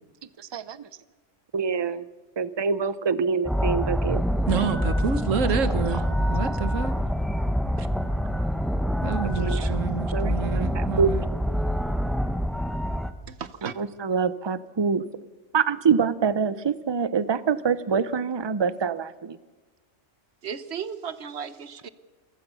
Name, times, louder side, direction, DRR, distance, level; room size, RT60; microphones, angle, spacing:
voice 1, 1.5-2.0 2.4-4.2 5.9-6.0 9.2-9.8 10.1-11.1 13.6-15.0 15.5-19.4, right 6 dB, 30° right, 16 dB, 0.5 m, -25 dB
sound 1, 3.5-13.1, equal, ahead, 0.8 m, -26 dB
voice 2, 4.5-6.0 6.3-7.0 7.8-7.9 9.0-11.2, right 6 dB, 80° right, 12 dB, 1.6 m, -28 dB
voice 3, 13.3-13.8 20.4-21.9, right 7 dB, 60° right, 14 dB, 1.2 m, -35 dB
27.0 x 15.5 x 6.9 m, 1.3 s
omnidirectional pair, 1.3 m